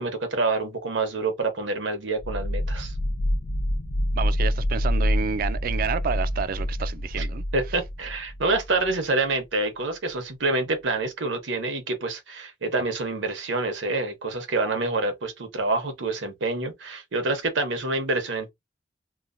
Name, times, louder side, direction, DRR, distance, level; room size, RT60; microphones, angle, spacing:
voice 1, 0.0-2.9 7.2-7.3 7.5-18.5, right 3 dB, 85° right, 0.9 m, -27 dB
sound 1, 2.2-8.9, equal, 45° left, 0.5 m, -27 dB
voice 2, 4.2-7.4, right 6 dB, 50° right, 0.3 m, -29 dB
2.9 x 2.1 x 2.5 m
head